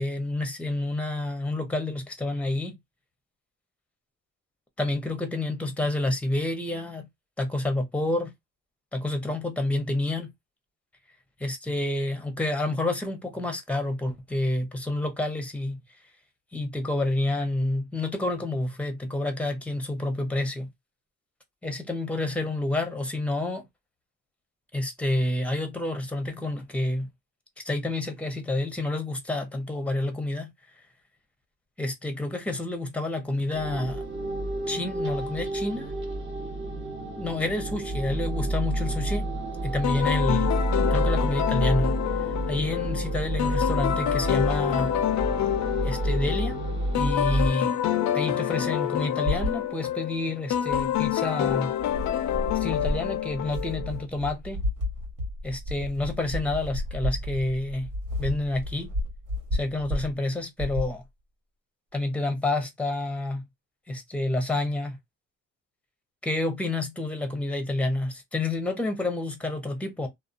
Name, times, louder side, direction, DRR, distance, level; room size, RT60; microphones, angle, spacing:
voice 1, 0.0-2.8 4.8-7.1 7.4-8.3 8.9-10.3 11.4-15.8 16.5-20.7 21.6-23.7 24.7-27.1 27.6-30.5 31.8-34.0 34.7-35.9 37.2-39.3 39.6-40.5 40.9-42.0 42.5-44.9 45.8-46.6 46.9-47.7 48.1-51.7 52.5-54.6 55.4-57.9 58.2-58.9 59.5-61.0 61.9-63.4 63.9-65.0 66.2-70.1, left 2 dB, 5° left, 0.8 m, -29 dB
sound 1, 33.5-47.5, right 1 dB, 40° right, 1.1 m, -29 dB
sound 2, 39.8-54.1, left 11 dB, 65° left, 0.5 m, -27 dB
sound 3, 49.3-49.6 50.7-51.1 51.5-60.1 60.6-60.9, left 1 dB, 80° right, 1.3 m, -32 dB
2.6 x 2.1 x 2.5 m
cardioid pair, 90°, 30 cm